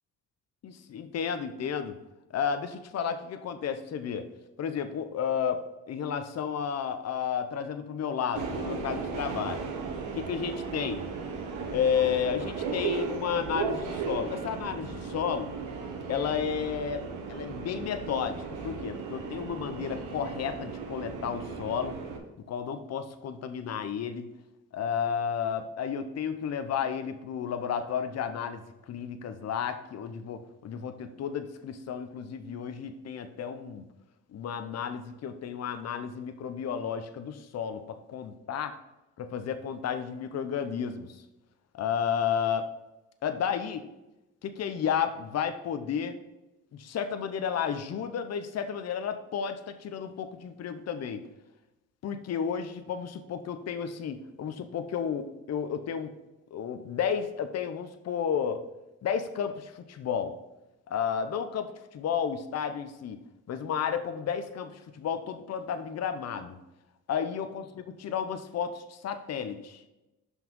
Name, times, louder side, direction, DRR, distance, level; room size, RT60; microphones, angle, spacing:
voice 1, 0.6-2.0 2.3-4.3 4.6-9.7 10.1-11.0 11.7-15.5 16.1-22.0 22.5-24.3 24.7-33.8 34.3-38.7 39.2-41.2 41.7-42.7 43.2-43.9 44.4-46.2 46.7-51.3 52.0-56.1 56.5-58.6 59.0-60.3 60.9-63.2 63.5-66.6 67.1-69.8, left 7 dB, 55° left, 9 dB, 0.8 m, -32 dB
Subway metro underground, 8.4-22.2, right 5 dB, 80° right, 1.3 m, -36 dB
5.9 x 5.5 x 5.4 m, 0.96 s
cardioid pair, 90°, 30 cm